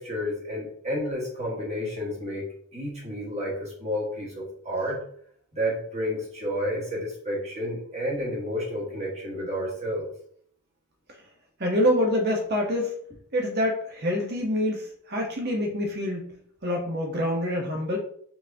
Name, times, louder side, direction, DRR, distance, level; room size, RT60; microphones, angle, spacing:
voice 1, 0.0-2.4 2.7-5.0 5.5-10.1, equal, 30° right, -4 dB, 1.5 m, -30 dB
voice 2, 11.6-13.0 13.3-18.0, left 1 dB, 45° right, 1 dB, 1.0 m, -26 dB
4.6 x 3.6 x 2.8 m, 0.63 s
head